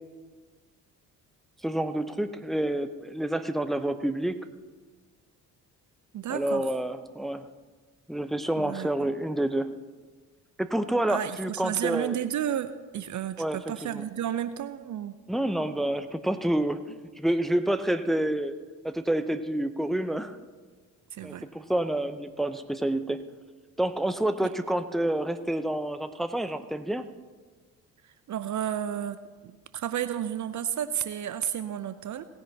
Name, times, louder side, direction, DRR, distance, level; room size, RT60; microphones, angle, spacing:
voice 1, 1.6-4.4 6.3-7.5 8.1-9.7 10.6-12.1 13.4-13.6 13.9-14.0 15.3-18.5 18.8-20.4 21.2-23.2 23.8-27.1, right 1 dB, ahead, 9 dB, 0.7 m, -28 dB
voice 2, 6.1-6.7 8.6-8.9 11.1-15.1 21.1-21.5 24.4-24.5 28.0-32.3, right 10 dB, 40° right, 13 dB, 0.7 m, -32 dB
18.5 x 10.0 x 2.9 m, 1.4 s
figure-of-eight pair, 45°, 44 cm